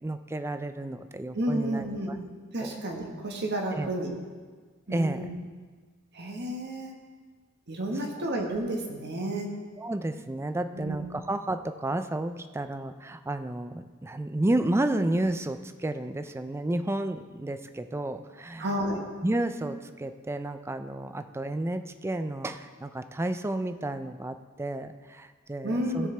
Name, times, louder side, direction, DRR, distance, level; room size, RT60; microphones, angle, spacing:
voice 1, 0.0-2.2 2.6-2.8 3.7-3.9 4.9-5.3 9.8-18.7 19.2-26.1, right 1 dB, 10° right, 10 dB, 0.4 m, -31 dB
voice 2, 1.3-2.2 2.5-4.1 4.9-5.3 6.1-6.9 7.7-9.5 10.7-11.0 18.6-19.0 25.6-26.1, right 1 dB, 55° right, 1 dB, 1.5 m, -31 dB
16.5 x 6.4 x 3.4 m, 1.5 s
head